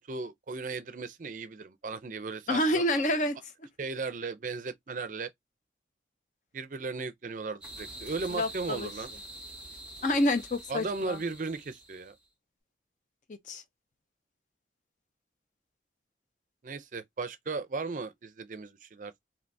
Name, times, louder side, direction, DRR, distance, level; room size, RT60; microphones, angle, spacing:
voice 1, 0.0-3.0 3.8-5.3 6.5-9.1 10.7-12.1 16.6-19.1, right 4 dB, 45° right, 0.4 m, -36 dB
voice 2, 2.5-3.4 8.3-8.9 10.0-11.2 13.3-13.6, left 1 dB, 45° left, 0.6 m, -28 dB
sound 1, 7.6-12.1, right 1 dB, 5° right, 1.7 m, -46 dB
3.3 x 2.7 x 2.6 m
head